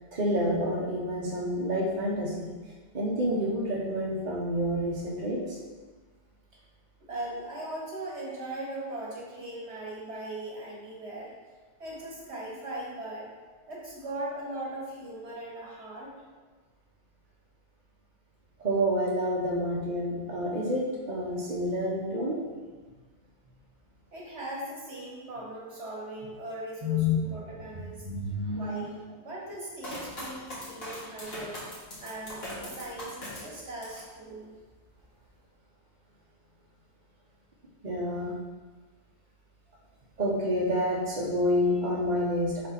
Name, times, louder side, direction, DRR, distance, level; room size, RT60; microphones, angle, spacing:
voice 1, 0.1-2.5 2.9-5.6 18.6-22.4 26.8-27.3 27.7-28.9 37.8-38.4 40.2-42.7, equal, 40° right, -4 dB, 1.0 m, -28 dB
voice 2, 7.1-11.3 11.8-13.3 13.7-16.1 24.1-28.0 28.5-31.6 32.0-34.5, right 1 dB, 70° right, -4 dB, 2.0 m, -39 dB
sound 1, 29.8-34.1 34.5-35.2, equal, 60° left, 2.1 m, -41 dB
4.8 x 4.1 x 5.8 m, 1.4 s
omnidirectional pair, 1.2 m